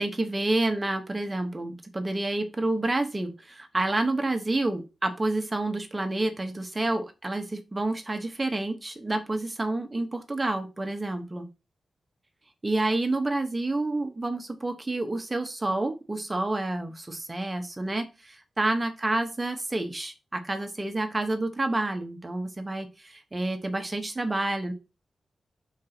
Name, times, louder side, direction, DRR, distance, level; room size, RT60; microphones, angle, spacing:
voice 1, 0.0-11.4 12.6-24.7, right 2 dB, 20° right, 7 dB, 0.9 m, -29 dB
5.2 x 3.9 x 5.9 m, 0.29 s
wide cardioid pair, 140°, 0 cm